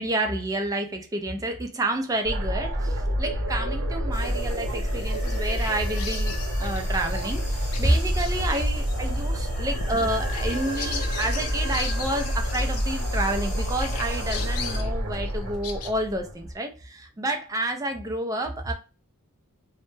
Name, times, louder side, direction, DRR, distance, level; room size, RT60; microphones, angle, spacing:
voice 1, 0.0-18.7, right 1 dB, 15° right, 4 dB, 0.4 m, -29 dB
sound 1, 2.2-16.5, equal, 60° right, 0.7 m, -28 dB
sound 2, 4.1-14.8, left 1 dB, 35° left, 1.0 m, -41 dB
Bird vocalization bird call bird song, 5.0-13.4 13.8-15.9, left 6 dB, 75° left, 0.4 m, -39 dB
2.1 x 2.0 x 3.1 m, 0.32 s
head